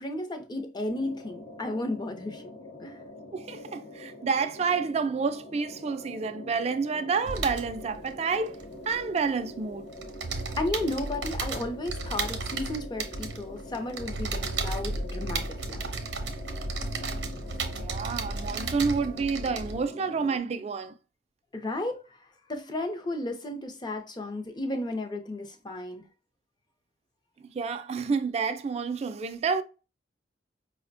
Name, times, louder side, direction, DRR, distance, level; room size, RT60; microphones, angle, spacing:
voice 1, 0.0-3.0 10.6-15.8 21.5-22.0 22.5-26.0, left 1 dB, 25° left, 0.5 m, -33 dB
sound 1, 0.9-20.4, left 2 dB, 60° left, 0.7 m, -45 dB
voice 2, 3.3-8.6 8.9-9.9 17.8-20.9 27.5-29.6, right 5 dB, 35° right, 0.3 m, -29 dB
sound 2, 7.2-9.5 9.8-19.9, right 3 dB, 80° right, 0.7 m, -34 dB
4.8 x 2.1 x 2.5 m
head